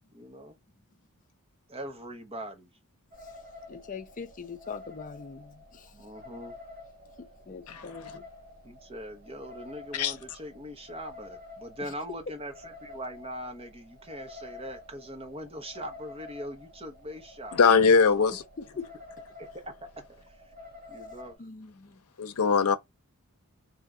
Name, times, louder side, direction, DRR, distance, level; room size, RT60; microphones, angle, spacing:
voice 1, 0.1-0.6 1.7-2.7 5.9-6.6 8.6-17.6 18.1-18.4 19.5-20.5 20.9-21.4, equal, 25° right, 1.0 m, -41 dB
Sound of crickets slowed down., 3.1-21.3, left 2 dB, 45° right, 1.5 m, -49 dB
voice 2, 3.7-5.9 7.2-8.3 18.8-18.9 21.4-21.9, left 5 dB, 35° left, 0.5 m, -42 dB
voice 3, 17.5-18.4 22.2-22.8, left 5 dB, 80° left, 0.7 m, -21 dB
3.6 x 2.9 x 3.7 m
head